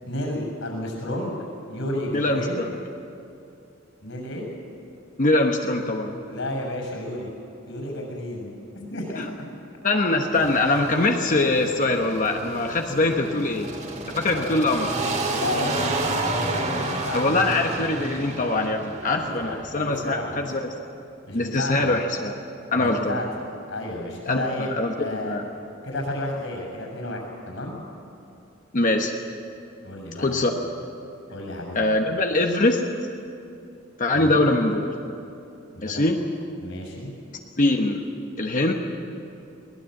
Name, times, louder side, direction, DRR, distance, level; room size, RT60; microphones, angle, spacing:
voice 1, 0.0-2.6 4.0-4.4 6.3-7.3 7.7-9.3 13.2-13.4 14.3-14.6 15.3-17.8 19.1-20.5 21.3-22.1 22.7-23.3 23.7-24.7 25.0-25.4 25.8-27.8 29.8-30.5 31.3-31.9 34.1-34.5 35.7-36.1 36.6-37.1, left 1 dB, 70° left, 1 dB, 6.8 m, -32 dB
voice 2, 2.1-2.7 5.2-6.2 9.2-9.3 9.8-13.7 14.1-14.9 17.1-20.7 21.3-22.3 22.7-23.2 24.3-25.5 28.7-29.1 30.2-30.5 31.7-32.8 34.0-34.9 35.8-36.2 37.6-38.1 38.4-38.7, left 2 dB, 40° left, 3 dB, 1.2 m, -23 dB
sound 1, 10.3-20.0, right 2 dB, 35° right, 2.5 m, -31 dB
22.0 x 19.0 x 7.9 m, 2.7 s
head